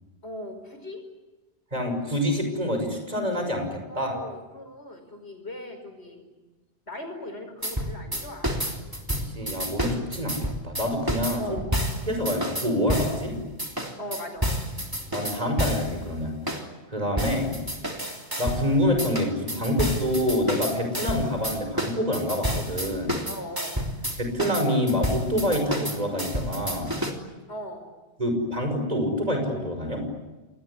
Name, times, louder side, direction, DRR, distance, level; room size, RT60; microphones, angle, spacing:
voice 1, 0.2-1.0 3.9-6.3 6.9-8.5 11.4-11.7 14.0-14.5 23.3-23.8 27.5-27.8, left 1 dB, 70° left, 6 dB, 5.8 m, -39 dB
voice 2, 1.7-4.2 8.9-9.0 9.3-11.6 12.1-13.4 15.1-16.3 16.9-17.6 18.4-23.2 24.2-26.9 28.2-30.0, left 1 dB, 35° right, 5 dB, 5.9 m, -26 dB
sound 1, 7.6-13.2 13.6-15.9 16.5-16.6 17.2-18.7 19.0-27.1, equal, 20° right, 3.3 m, -29 dB
28.0 x 20.0 x 9.9 m, 1.2 s
omnidirectional pair, 1.1 m